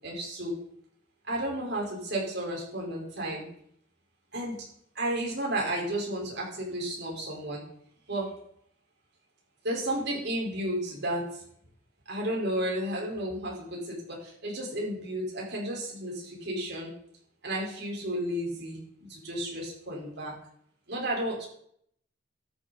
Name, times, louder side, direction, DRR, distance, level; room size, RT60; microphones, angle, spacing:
voice 1, 0.0-0.5 1.2-3.5 4.3-4.7 4.9-7.6 8.1-8.4 9.6-11.4 12.1-16.9 17.4-20.3 20.9-21.5, right 1 dB, 60° right, -2 dB, 4.8 m, -32 dB
13.5 x 9.2 x 4.2 m, 0.66 s
head